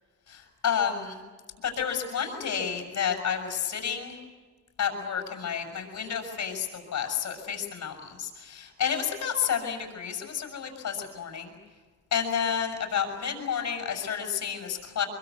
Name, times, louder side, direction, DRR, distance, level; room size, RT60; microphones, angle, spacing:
voice 1, 0.3-1.2 1.6-4.2 4.8-11.5 12.1-15.1, left 7 dB, 60° left, 4 dB, 6.4 m, -30 dB
25.0 x 23.5 x 8.3 m, 1.4 s
cardioid pair, 90°, 30 cm